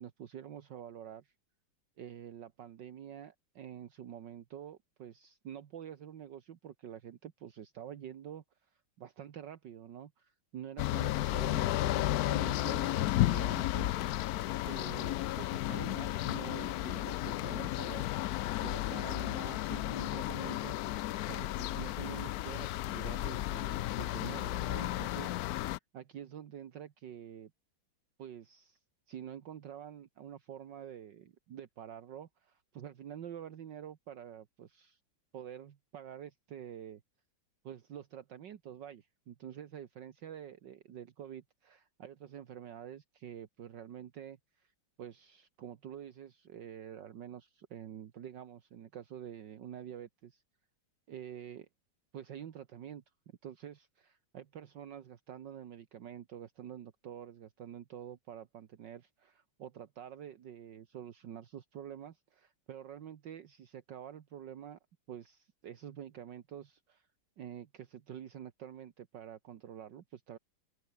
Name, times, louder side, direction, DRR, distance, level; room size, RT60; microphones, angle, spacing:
voice 1, 0.0-1.3 2.0-14.3 14.6-27.5 28.2-28.8 29.1-35.0 35.3-37.0 37.6-44.7 45.0-50.4 51.1-51.7 52.1-53.0 53.4-64.8 65.1-67.1 67.4-70.4, right 9 dB, 65° right, 1.8 m, -47 dB
sound 1, 10.8-25.8, left 15 dB, 90° left, 0.8 m, -33 dB
open air
omnidirectional pair, 2.2 m